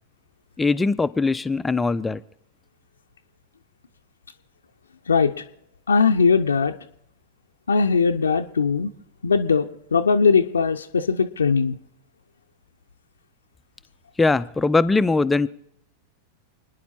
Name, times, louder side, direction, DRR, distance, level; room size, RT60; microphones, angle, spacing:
voice 1, 0.6-2.2 14.2-15.5, left 3 dB, 10° left, 15 dB, 0.5 m, -21 dB
voice 2, 5.9-6.7 7.7-8.9 9.2-9.7 9.9-11.8, left 5 dB, 75° left, 5 dB, 0.6 m, -19 dB
29.0 x 10.0 x 4.2 m, 0.71 s
figure-of-eight pair, 90°, 0 cm